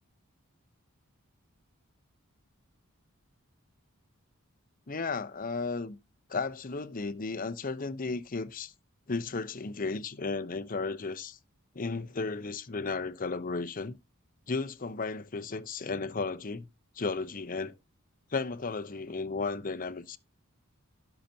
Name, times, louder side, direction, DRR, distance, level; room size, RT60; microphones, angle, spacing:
voice 1, 4.9-6.0 6.3-8.7 9.1-11.4 11.7-14.0 14.5-16.7 17.0-17.7 18.3-20.2, left 4 dB, 40° left, 0.8 m, -34 dB
17.0 x 5.9 x 2.8 m
head